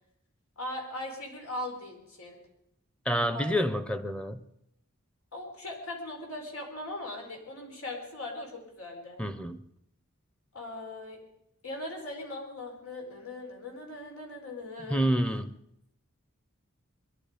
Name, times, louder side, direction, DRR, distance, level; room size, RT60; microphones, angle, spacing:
voice 1, 0.6-2.4 3.3-3.6 5.3-9.2 10.5-11.2 11.6-15.1, left 1 dB, 90° left, 1 dB, 4.4 m, -39 dB
voice 2, 3.1-4.4 9.2-9.6 14.9-15.6, equal, 5° left, 11 dB, 0.7 m, -28 dB
22.0 x 11.5 x 5.1 m, 0.77 s
head